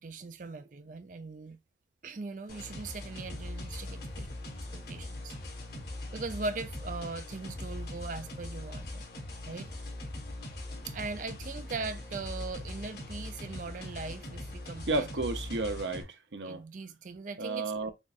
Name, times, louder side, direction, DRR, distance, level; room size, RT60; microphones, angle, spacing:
voice 1, 0.0-1.6 2.0-4.3 4.7-5.3 6.1-9.0 9.5-9.7 10.9-15.1 16.4-17.7, right 3 dB, 45° right, 0.4 m, -40 dB
sound 1, 2.5-16.0, left 1 dB, 60° left, 2.8 m, -41 dB
voice 2, 14.9-16.6 17.4-17.9, right 3 dB, 90° right, 0.8 m, -32 dB
6.3 x 2.4 x 2.5 m
head